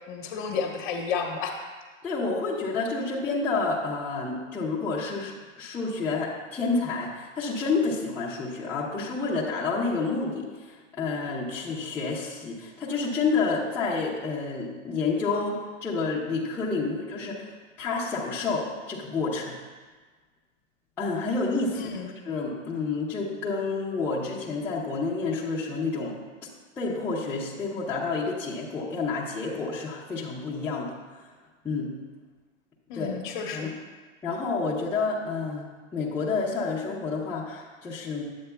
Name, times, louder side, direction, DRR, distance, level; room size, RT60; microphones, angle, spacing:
voice 1, 0.0-1.6 21.7-22.1 32.9-33.7, left 6 dB, 40° left, 3 dB, 1.0 m, -32 dB
voice 2, 2.0-10.5 11.0-17.5 17.8-19.6 21.0-26.2 26.8-30.9 31.6-31.9 32.9-33.1 33.5-33.7 34.2-38.2, left 4 dB, 5° left, -8 dB, 0.6 m, -29 dB
9.2 x 7.8 x 2.2 m, 1.4 s
hypercardioid pair, 145°, 38 cm